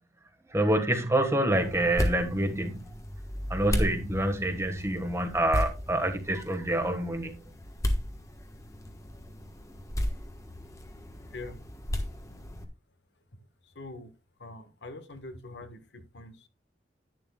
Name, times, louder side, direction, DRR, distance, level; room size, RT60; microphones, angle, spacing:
voice 1, 0.5-2.9 3.5-7.4, right 1 dB, 15° right, 1.4 m, -27 dB
sound 1, 1.5-12.6, equal, 20° left, 1.2 m, -34 dB
voice 2, 13.6-14.1 14.4-16.5, left 2 dB, 75° left, 1.3 m, -44 dB
10.5 x 10.5 x 2.3 m
head